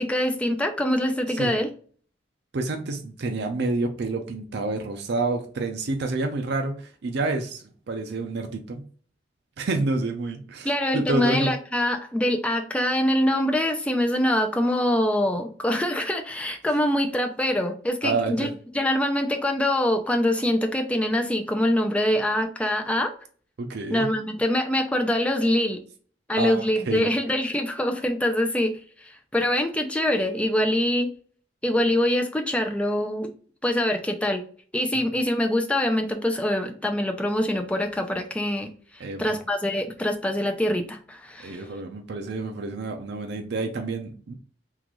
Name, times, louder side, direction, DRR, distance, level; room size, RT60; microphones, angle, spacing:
voice 1, 0.0-1.7 10.6-23.1 23.9-25.8 26.3-28.8 29.0-31.1 31.6-33.3 33.6-34.4 34.7-38.7 39.2-41.6, left 1 dB, 5° left, 3 dB, 0.4 m, -24 dB
voice 2, 2.5-8.9 9.6-11.5 18.0-18.5 23.6-24.1 26.4-27.1 39.0-39.4 41.4-44.3, right 3 dB, 65° right, 4 dB, 0.5 m, -28 dB
3.7 x 2.4 x 3.0 m, 0.44 s
head